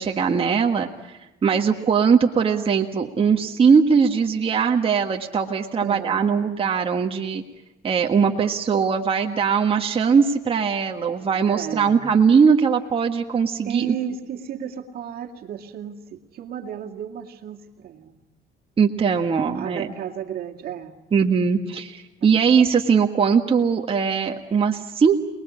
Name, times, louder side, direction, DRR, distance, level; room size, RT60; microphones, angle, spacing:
voice 1, 0.0-7.4 7.8-13.9 18.8-19.9 21.1-25.2, right 6 dB, 35° right, 2 dB, 1.6 m, -20 dB
voice 2, 5.8-6.2 11.5-12.0 13.6-18.2 19.5-21.0 22.2-22.7, right 9 dB, 65° right, 2 dB, 2.2 m, -33 dB
28.5 x 20.5 x 8.7 m, 0.97 s
cardioid pair, 110°, 17 cm